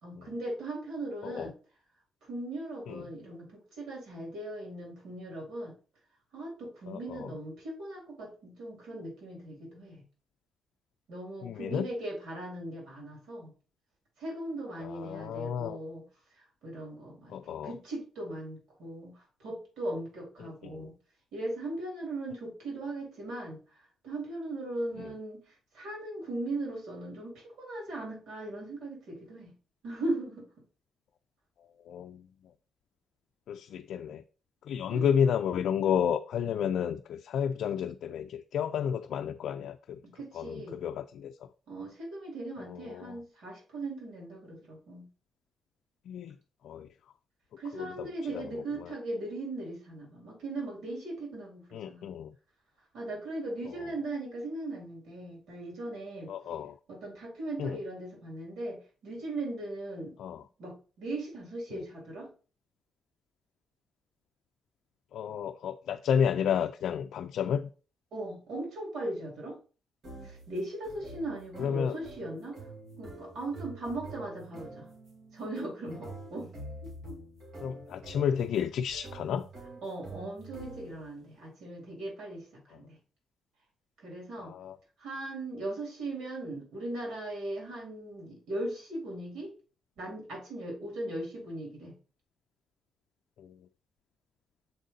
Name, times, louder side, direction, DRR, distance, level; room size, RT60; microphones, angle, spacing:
voice 1, 0.0-1.5 2.3-5.7 6.3-10.0 11.1-13.5 14.2-16.0 16.6-20.9 21.3-29.5 29.8-30.5 34.9-35.1 40.0-40.8 41.7-45.1 47.6-52.1 52.9-56.3 56.9-60.1 60.6-62.3 68.1-69.6 70.2-72.6 73.0-74.9 75.3-76.5 76.8-76.9 79.8-83.0 84.0-84.5 85.0-89.5 90.0-91.9, right 2 dB, 90° right, 3.3 m, -38 dB
voice 2, 6.9-7.3 11.4-11.9 14.8-15.8 17.3-17.7 20.4-20.9 25.0-25.1 31.9-32.3 33.5-34.2 34.7-40.0 40.3-41.3 42.6-43.2 46.1-46.4 46.6-46.9 47.7-48.1 48.3-48.9 51.7-52.3 56.3-56.7 57.6-57.8 60.2-60.4 65.1-67.7 71.6-71.9 77.6-79.5 84.4-84.8 93.4-93.6, left 8 dB, 70° left, 0.4 m, -31 dB
sound 1, 70.0-81.2, right 2 dB, 45° right, 2.0 m, -47 dB
7.1 x 4.0 x 3.9 m
cardioid pair, 170°, 0 cm